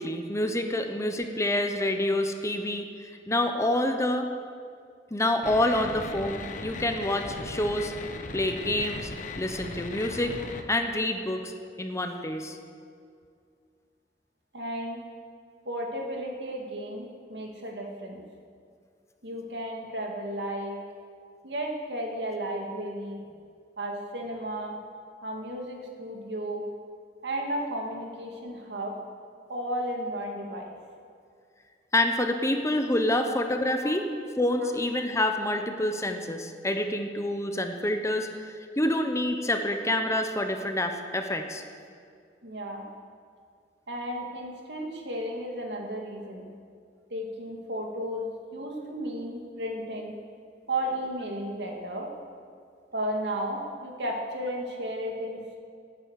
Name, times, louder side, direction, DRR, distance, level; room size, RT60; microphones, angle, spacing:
voice 1, 0.0-4.3 5.1-7.9 8.3-9.1 9.4-10.4 10.7-11.5 11.8-12.6 31.9-34.1 34.4-41.6, left 1 dB, 15° left, 6 dB, 0.9 m, -27 dB
sound 1, 5.4-10.6, left 3 dB, 45° left, 1.0 m, -38 dB
voice 2, 14.5-15.0 15.6-18.2 19.2-20.8 21.4-23.2 23.8-24.8 25.2-26.6 27.2-28.9 29.5-30.7 33.8-33.9 34.6-34.7 42.4-42.9 43.9-46.5 47.1-50.2 50.7-52.1 52.9-55.6, right 1 dB, 70° right, 1 dB, 2.3 m, -34 dB
18.0 x 9.5 x 6.5 m, 2.2 s
head